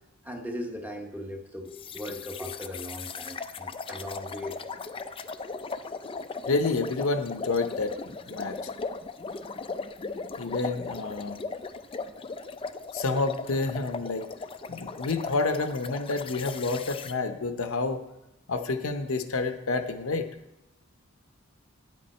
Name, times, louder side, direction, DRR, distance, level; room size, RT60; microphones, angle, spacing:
voice 1, 0.2-4.6 5.0-5.1, left 1 dB, 10° right, 3 dB, 0.9 m, -38 dB
sound 1, 1.7-17.1, left 4 dB, 25° left, 0.4 m, -38 dB
voice 2, 6.5-7.9 8.3-8.6 10.4-11.4 12.9-14.3 14.7-18.0 18.5-20.3, left 3 dB, 75° left, 8 dB, 0.7 m, -29 dB
9.4 x 8.5 x 4.3 m, 0.90 s
head